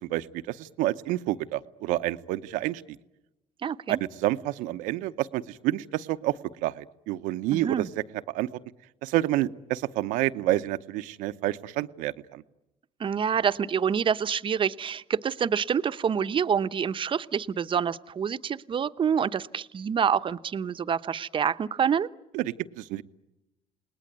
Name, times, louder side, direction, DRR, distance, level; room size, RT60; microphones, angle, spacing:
voice 1, 0.0-2.8 3.9-7.9 8.3-8.5 9.0-12.4 22.3-23.0, right 15 dB, 80° right, 11 dB, 0.9 m, -29 dB
voice 2, 3.6-4.0 7.5-7.9 13.0-22.1, right 7 dB, 40° right, 12 dB, 0.9 m, -27 dB
29.0 x 20.0 x 9.4 m, 0.96 s
supercardioid pair, 80°, 13 cm